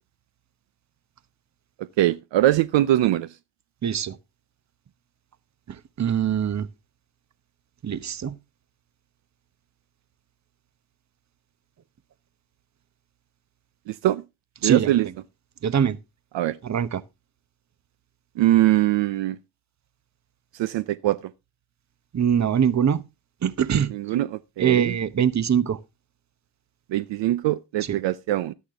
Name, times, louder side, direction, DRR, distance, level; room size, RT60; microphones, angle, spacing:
voice 1, 1.8-3.3 13.9-14.2 14.6-15.1 16.3-16.6 18.4-19.4 20.5-21.3 23.9-25.0 26.9-28.5, right 14 dB, 65° right, 0.7 m, -22 dB
voice 2, 3.8-4.2 6.0-6.7 7.8-8.3 14.6-14.9 15.6-16.0 16.6-17.0 22.1-23.0 23.4-23.9 24.6-25.8, right 8 dB, 35° right, 0.9 m, -22 dB
11.5 x 8.5 x 3.6 m
supercardioid pair, 70°, 49 cm